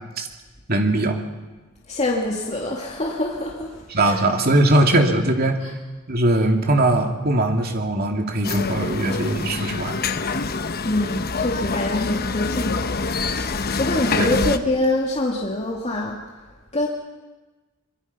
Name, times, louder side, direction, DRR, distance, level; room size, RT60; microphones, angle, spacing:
voice 1, 0.7-1.2 3.9-5.6 6.1-10.0 14.2-14.4, right 1 dB, 50° right, 3 dB, 2.6 m, -20 dB
voice 2, 1.9-4.2 5.6-5.7 10.8-13.0 13.8-16.4 16.7-16.9, left 1 dB, 35° left, -2 dB, 2.3 m, -25 dB
sound 1, 8.4-14.6, left 4 dB, 50° left, 0.9 m, -26 dB
25.0 x 23.0 x 5.6 m, 1.2 s
head